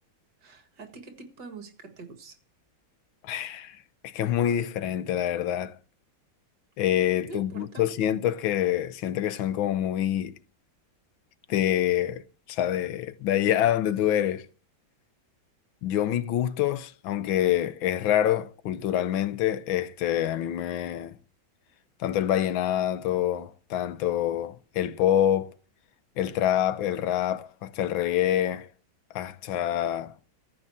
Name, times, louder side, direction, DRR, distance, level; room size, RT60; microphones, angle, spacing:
voice 1, 0.4-2.4 7.3-7.9, right 3 dB, 60° right, 2.3 m, -44 dB
voice 2, 3.2-3.8 4.0-5.8 6.8-10.3 11.5-12.2 12.5-14.5 15.8-21.2 22.0-25.5 26.2-28.7 29.1-30.1, left 11 dB, 80° left, 1.5 m, -26 dB
14.0 x 5.6 x 8.5 m
omnidirectional pair, 2.1 m